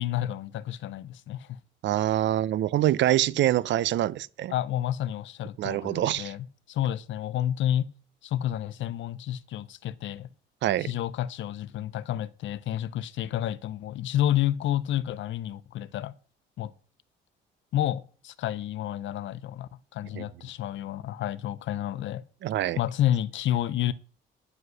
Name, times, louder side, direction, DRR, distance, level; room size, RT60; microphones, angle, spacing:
voice 1, 0.0-1.6 4.5-7.9 8.2-10.3 10.8-16.1 16.6-16.7 17.7-22.2 22.8-23.9, left 12 dB, 70° left, 0.6 m, -30 dB
voice 2, 1.8-4.5 5.6-6.3 10.6-10.9 20.1-20.2 22.4-22.8, right 13 dB, 65° right, 0.5 m, -25 dB
9.6 x 4.8 x 6.2 m
cardioid pair, 90°, 20 cm